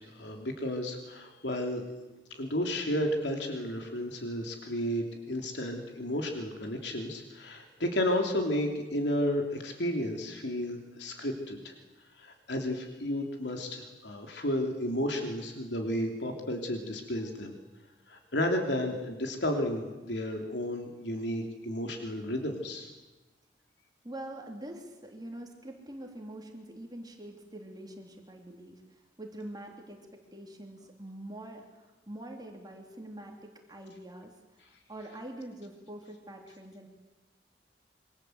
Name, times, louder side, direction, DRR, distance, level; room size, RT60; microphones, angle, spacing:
voice 1, 0.0-1.8 2.3-11.7 12.2-17.5 18.1-22.9, left 1 dB, 85° left, 3 dB, 3.3 m, -32 dB
voice 2, 24.0-36.9, right 1 dB, 25° right, 2 dB, 3.3 m, -45 dB
26.5 x 24.5 x 8.1 m, 1.1 s
head